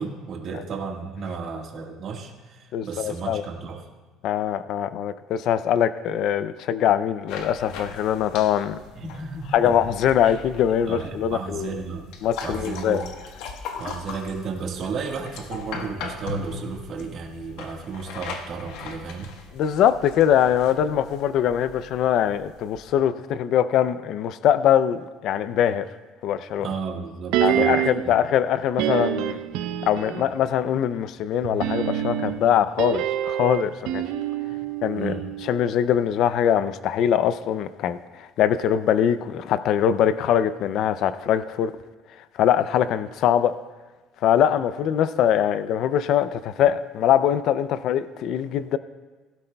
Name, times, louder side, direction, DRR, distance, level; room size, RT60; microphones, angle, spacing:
voice 1, 0.0-3.9 8.9-9.7 10.8-12.1 12.4-13.0 13.8-19.3 26.6-27.8 28.0-28.2 34.5-34.6 34.9-35.2, right 5 dB, 35° right, 0 dB, 1.5 m, -33 dB
voice 2, 2.7-3.4 4.2-8.8 9.5-11.7 12.2-13.0 19.5-25.9 26.2-26.7 27.4-29.4 29.8-34.0 34.8-41.7 42.4-43.5 44.2-48.8, left 9 dB, 45° left, 13 dB, 0.4 m, -22 dB
sound 1, 7.3-23.0, left 5 dB, 75° left, 1.2 m, -39 dB
sound 2, 27.3-28.1 28.8-30.4 31.4-35.7 35.9-36.0, right 11 dB, 70° right, 0.6 m, -26 dB
20.5 x 12.5 x 2.3 m, 1.3 s
cardioid pair, 180°, 0 cm